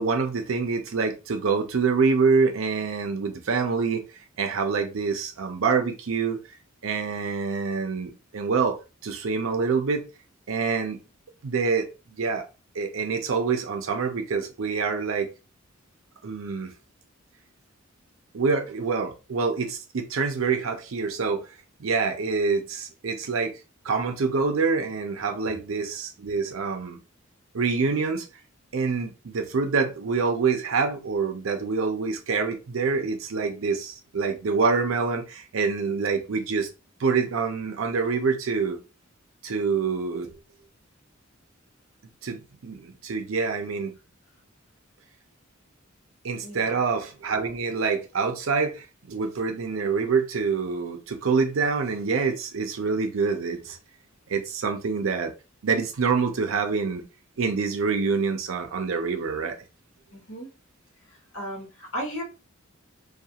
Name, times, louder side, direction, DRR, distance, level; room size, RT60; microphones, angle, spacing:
voice 1, 0.0-4.0 4.4-6.4 6.8-10.1 10.5-11.0 11.4-11.9 12.2-12.4 12.7-15.3 16.2-16.7 18.3-21.4 21.8-23.5 23.8-27.0 27.5-28.3 28.7-36.7 37.0-38.8 39.4-40.3 42.2-43.9 46.2-53.8 54.3-55.3 55.6-57.0 57.4-59.6, right 5 dB, 80° right, 0.5 m, -26 dB
voice 2, 46.4-46.8 60.1-60.5 61.3-62.2, equal, 75° left, 1.2 m, -35 dB
2.4 x 2.3 x 2.8 m
head